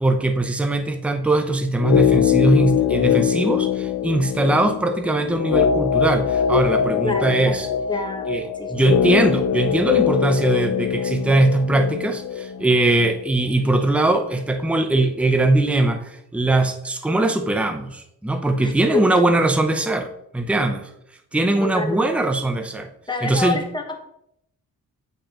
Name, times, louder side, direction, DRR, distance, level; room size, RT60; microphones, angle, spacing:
voice 1, 0.0-7.7 8.3-20.9 21.3-22.9 23.2-23.6, right 2 dB, 5° right, 6 dB, 0.6 m, -21 dB
sound 1, 1.8-13.9 14.1-14.2, left 9 dB, 55° left, 0.5 m, -22 dB
voice 2, 7.0-7.6 7.9-8.3 8.5-8.7 18.6-19.0 21.6-22.1 23.1-24.0, left 3 dB, 10° left, 2 dB, 1.2 m, -27 dB
8.6 x 5.1 x 2.9 m, 0.76 s
cardioid pair, 100°, 36 cm